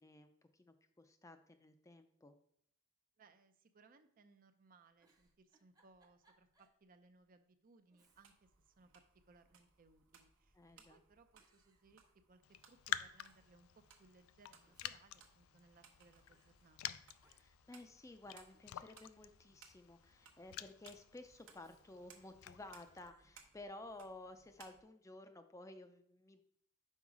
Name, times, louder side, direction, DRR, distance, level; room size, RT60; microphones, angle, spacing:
voice 1, 0.0-2.3 10.6-11.0 17.4-26.4, left 2 dB, 15° left, 8 dB, 0.4 m, -55 dB
voice 2, 3.2-12.4 12.7-17.0, right 3 dB, 40° right, 9 dB, 0.5 m, -67 dB
Giggle, 5.0-6.8 7.2-7.3 7.9-8.6 8.9-9.7 10.5-10.9 11.4-12.6 12.9-13.0 13.2-13.6 14.4-16.0 16.3-16.5 17.2-17.7 18.0-19.4 21.5-22.6 23.0-23.3, right 2 dB, 20° right, 0.8 m, -76 dB
sound 1, 8.1-24.8, right 5 dB, 65° right, 0.9 m, -67 dB
Raindrop, 12.4-23.1, left 11 dB, 85° left, 0.3 m, -49 dB
5.4 x 4.8 x 4.8 m, 0.67 s
head